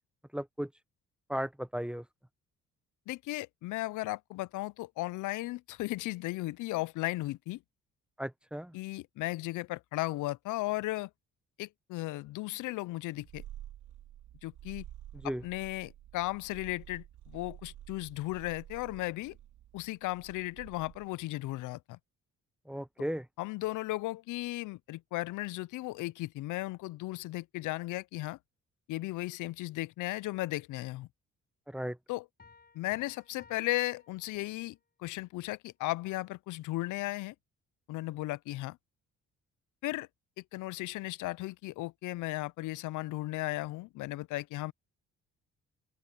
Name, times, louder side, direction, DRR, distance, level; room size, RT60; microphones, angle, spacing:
voice 1, 0.3-0.7 1.3-2.0 8.2-8.7 15.2-15.4 22.7-23.3 31.7-32.0, equal, 5° right, 0.9 m, -35 dB
voice 2, 3.1-7.6 8.7-11.1 11.6-13.4 14.4-14.8 15.4-19.4 19.7-22.0 23.4-28.4 28.9-31.1 32.1-32.3 32.7-37.3 37.9-38.8 39.8-40.1 40.5-44.7, left 19 dB, 80° left, 0.5 m, -36 dB
Purr, 13.1-21.2, right 12 dB, 85° right, 2.2 m, -51 dB
Piano, 32.4-34.9, left 4 dB, 30° left, 5.4 m, -60 dB
open air
cardioid pair, 90°, 30 cm